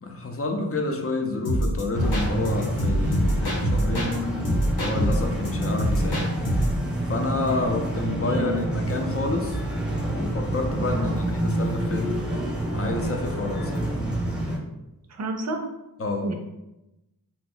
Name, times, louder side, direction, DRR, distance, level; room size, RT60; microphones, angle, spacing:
voice 1, 0.0-4.1 4.8-6.3 7.0-9.6 10.1-12.2 12.7-13.8 16.0-16.3, left 3 dB, 40° left, 3 dB, 0.5 m, -29 dB
sound 1, 1.4-4.2 4.4-6.8, equal, 90° left, 1.0 m, -25 dB
sound 2, 1.9-14.6, right 1 dB, ahead, 0.7 m, -28 dB
voice 2, 3.9-4.5 8.2-8.7 10.9-11.2 15.1-15.7 16.2-16.3, right 1 dB, 45° right, 4 dB, 0.5 m, -31 dB
2.8 x 2.1 x 3.8 m, 0.95 s
wide cardioid pair, 95°, 37 cm